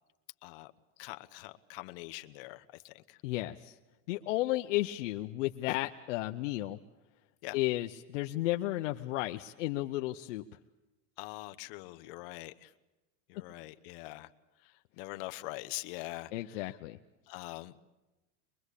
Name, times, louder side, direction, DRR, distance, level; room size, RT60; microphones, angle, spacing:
voice 1, 0.4-0.7 1.0-3.2 7.4-7.6 11.2-12.7 13.3-14.3 14.6-16.8 17.3-17.8, left 20 dB, 50° left, 10 dB, 1.0 m, -44 dB
voice 2, 3.2-3.7 4.1-6.8 7.5-10.4 16.3-17.0, left 17 dB, 85° left, 4 dB, 0.9 m, -33 dB
23.5 x 22.5 x 8.3 m, 1.1 s
supercardioid pair, 170°, 36 cm